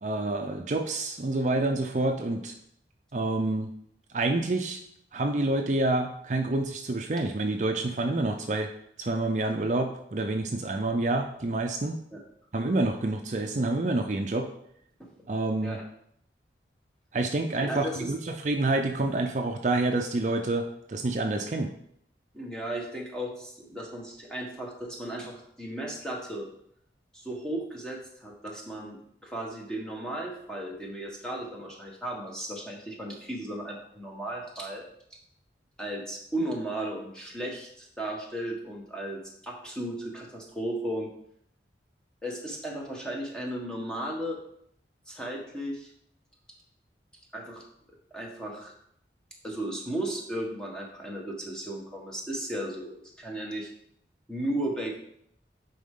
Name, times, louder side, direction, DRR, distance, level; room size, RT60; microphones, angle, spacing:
voice 1, 0.0-2.5 3.1-3.7 4.1-4.8 5.1-8.7 9.0-12.0 12.5-14.5 15.3-15.8 17.1-21.7, right 2 dB, 40° right, 4 dB, 0.5 m, -28 dB
voice 2, 17.7-18.1 22.3-26.5 27.1-34.8 35.8-41.1 42.2-44.4 45.1-45.9 47.3-47.6 48.1-48.7 49.4-53.7 54.3-55.0, right 1 dB, 5° left, -2 dB, 1.3 m, -35 dB
10.0 x 4.2 x 3.7 m, 0.70 s
head